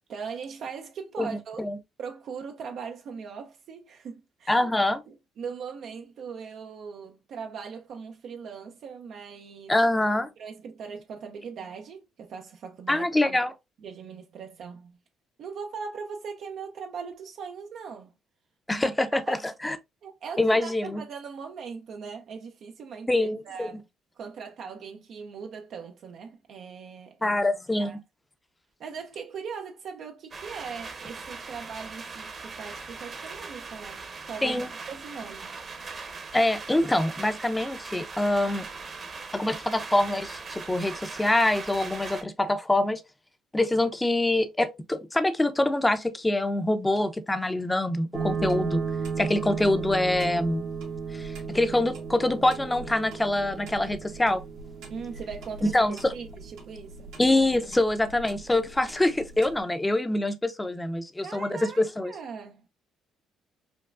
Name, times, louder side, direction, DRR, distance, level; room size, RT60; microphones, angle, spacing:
voice 1, 0.1-1.6 2.0-4.7 5.1-9.8 10.4-13.4 13.8-15.0 15.4-18.1 18.7-18.9 19.3-19.4 20.0-23.9 24.2-27.4 27.8-28.0 28.8-35.5 54.9-57.2 61.2-62.7, right 6 dB, 65° right, 0.6 m, -40 dB
voice 2, 1.2-1.8 4.5-5.0 9.7-10.3 12.9-13.5 18.7-19.8 20.4-21.0 23.1-23.7 27.2-27.9 34.4-34.7 36.3-38.7 39.3-43.0 43.5-48.8 49.2-50.6 51.1-54.4 55.6-56.1 57.2-62.1, left 1 dB, 15° left, 0.6 m, -25 dB
sound 1, 30.3-42.2, right 4 dB, 40° right, 1.0 m, -40 dB
sound 2, 48.1-59.6, right 5 dB, 85° right, 1.5 m, -35 dB
5.2 x 2.3 x 2.3 m
supercardioid pair, 75°, 0 cm